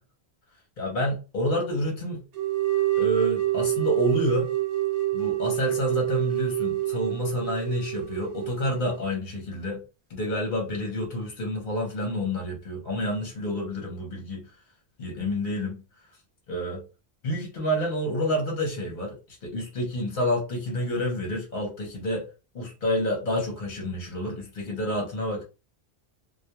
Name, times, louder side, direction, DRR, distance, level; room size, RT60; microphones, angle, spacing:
voice 1, 0.8-2.2 3.0-4.5 5.1-9.8 10.1-14.5 15.0-15.8 16.5-16.8 17.2-22.3 22.5-25.4, equal, 50° left, 0.8 m, -29 dB
sound 1, 2.3-9.1, right 15 dB, 50° right, 0.5 m, -27 dB
2.2 x 2.1 x 2.8 m
omnidirectional pair, 1.1 m